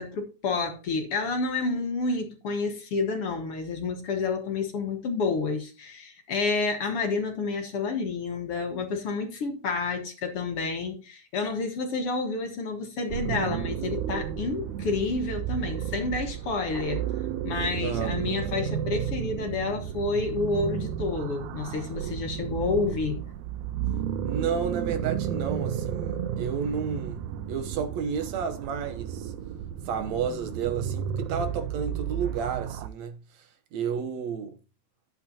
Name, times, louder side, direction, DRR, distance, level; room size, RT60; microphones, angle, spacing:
voice 1, 0.0-17.0 17.4-23.2, left 4 dB, 55° left, 2.3 m, -29 dB
sound 1, 13.1-32.9, right 9 dB, 85° right, 2.3 m, -32 dB
voice 2, 17.8-18.2 24.2-27.2 27.5-29.3 29.9-33.2 33.7-34.6, right 6 dB, 70° right, 2.2 m, -31 dB
11.5 x 8.7 x 2.9 m
omnidirectional pair, 3.4 m